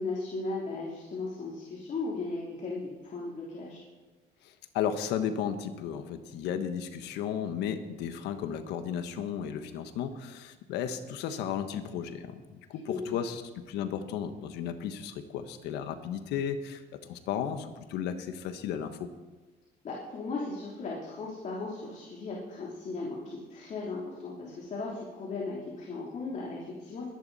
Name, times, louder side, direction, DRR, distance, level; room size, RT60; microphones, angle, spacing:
voice 1, 0.0-3.8 12.8-13.2 19.8-27.1, left 3 dB, 45° left, -4 dB, 3.3 m, -36 dB
voice 2, 4.7-13.4 13.7-16.8 17.1-19.1, left 8 dB, 85° left, 9 dB, 1.3 m, -34 dB
22.5 x 10.5 x 4.2 m, 1.3 s
cardioid pair, 110°, 17 cm